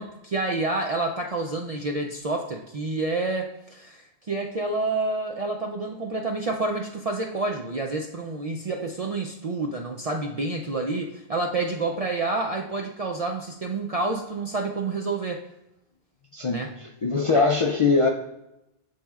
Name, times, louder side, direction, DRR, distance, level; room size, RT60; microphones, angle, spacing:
voice 1, 0.0-15.4 16.5-16.7, right 3 dB, 55° right, 1 dB, 0.4 m, -28 dB
voice 2, 16.3-18.1, left 4 dB, 55° left, 2 dB, 0.3 m, -22 dB
10.5 x 4.2 x 2.4 m, 0.89 s
omnidirectional pair, 1.2 m